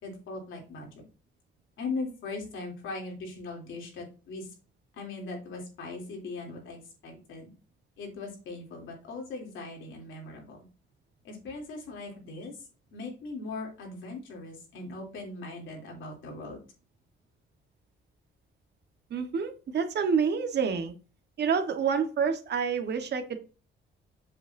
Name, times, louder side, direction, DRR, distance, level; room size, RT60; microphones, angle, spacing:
voice 1, 0.0-0.9 1.8-4.5 5.0-7.5 8.0-10.6 11.2-12.6 12.9-16.6, left 3 dB, 80° left, 1 dB, 3.2 m, -39 dB
voice 2, 19.1-20.9 21.4-23.4, right 6 dB, 60° right, 6 dB, 1.4 m, -28 dB
7.6 x 6.6 x 2.7 m, 0.34 s
cardioid pair, 90°, 20 cm